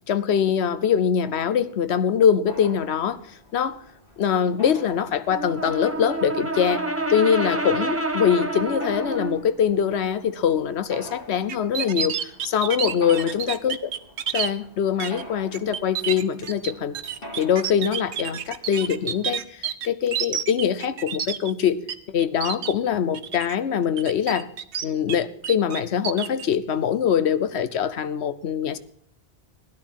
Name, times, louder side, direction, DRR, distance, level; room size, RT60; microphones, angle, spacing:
voice 1, 0.1-3.2 3.5-3.8 4.2-6.8 7.1-13.8 14.3-17.0 17.4-24.5 24.8-28.8, left 8 dB, 75° left, 1.1 m, -23 dB
Mechanisms, 2.5-19.2, equal, 55° left, 2.9 m, -45 dB
Brass instrument, 5.3-9.4, right 2 dB, 15° right, 0.9 m, -28 dB
sound 1, 11.5-14.5 15.0-15.2 15.5-21.9 22.2-22.7 23.1-23.5 24.0-25.2 25.4-26.4, right 8 dB, 85° right, 1.1 m, -29 dB
16.0 x 10.5 x 6.3 m
omnidirectional pair, 1.1 m